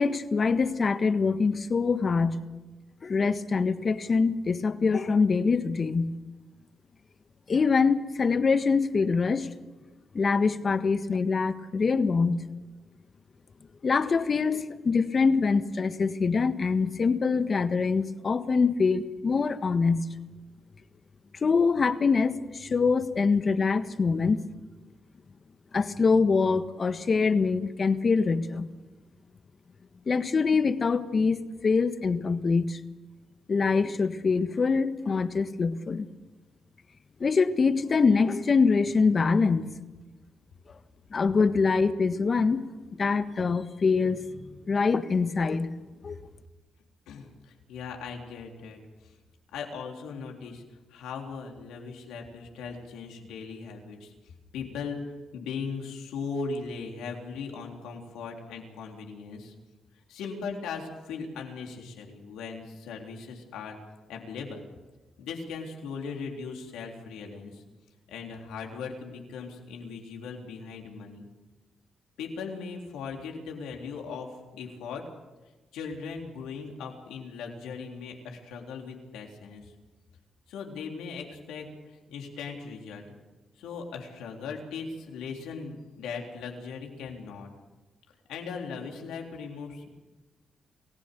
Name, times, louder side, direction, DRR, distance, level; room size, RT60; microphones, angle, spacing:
voice 1, 0.0-2.4 3.0-6.1 7.5-9.5 10.1-12.4 13.8-20.0 21.4-24.4 25.7-28.7 30.1-31.4 31.6-32.8 33.5-36.1 37.2-39.7 41.1-42.7 43.0-44.2 44.7-45.7 46.0-46.2, left 4 dB, 50° left, 10 dB, 1.5 m, -24 dB
voice 2, 47.1-49.2 49.5-50.6 50.9-54.1 54.5-59.5 60.1-63.8 64.1-64.6 65.2-67.6 68.1-71.3 72.2-75.0 75.7-79.7 80.5-83.1 83.6-87.5 88.3-89.9, left 5 dB, 85° left, 1 dB, 3.6 m, -38 dB
29.0 x 15.5 x 6.9 m, 1.2 s
supercardioid pair, 50°, 0 cm